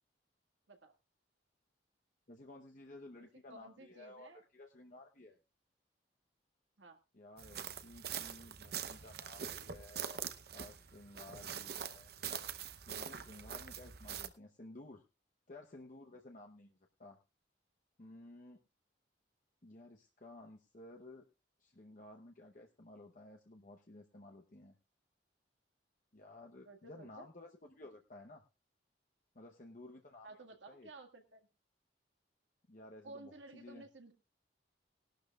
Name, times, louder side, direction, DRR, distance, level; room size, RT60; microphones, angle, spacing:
voice 1, 2.3-5.4 7.1-12.1 12.7-15.0 15.5-17.2 18.0-18.6 19.6-21.3 21.6-24.8 26.1-28.4 29.3-30.9 32.7-33.9, left 2 dB, 45° left, 2 dB, 1.0 m, -55 dB
voice 2, 3.5-4.4 6.8-7.0 26.7-27.3 30.2-31.4 33.0-34.1, right 2 dB, 85° right, 5 dB, 1.9 m, -54 dB
sound 1, 7.4-14.3, right 8 dB, 55° right, 0.8 m, -44 dB
19.5 x 12.0 x 2.4 m, 0.27 s
head